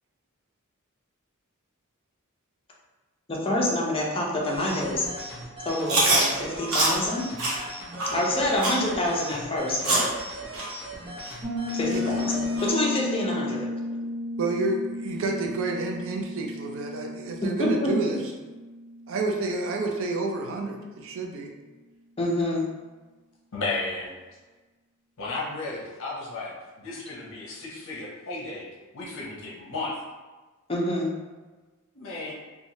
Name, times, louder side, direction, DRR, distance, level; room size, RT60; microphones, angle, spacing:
voice 1, 3.3-5.0 5.6-7.2 8.1-10.1 11.7-13.7 17.8-17.9 22.2-22.7 30.7-31.1, left 1 dB, 25° left, -3 dB, 0.5 m, -27 dB
sound 1, 4.4-12.8, right 1 dB, 25° right, 0.9 m, -38 dB
Chewing mastication, 5.9-6.3 6.7-6.9 7.4-7.5 8.0-8.1 8.6-8.8 9.3-9.4 9.8-10.1 10.5-10.6 11.2-11.3 11.9-12.0 12.6-12.7, right 2 dB, 80° right, 0.9 m, -23 dB
Piano, 11.4-19.9, left 2 dB, 45° right, 1.1 m, -33 dB
voice 2, 14.4-18.2 19.1-21.5, right 3 dB, 65° right, 1 dB, 0.4 m, -29 dB
voice 3, 23.5-24.1 25.2-28.7 28.9-30.0 31.9-32.3, left 3 dB, 65° left, -4 dB, 0.7 m, -34 dB
3.0 x 2.3 x 2.7 m, 1.3 s
head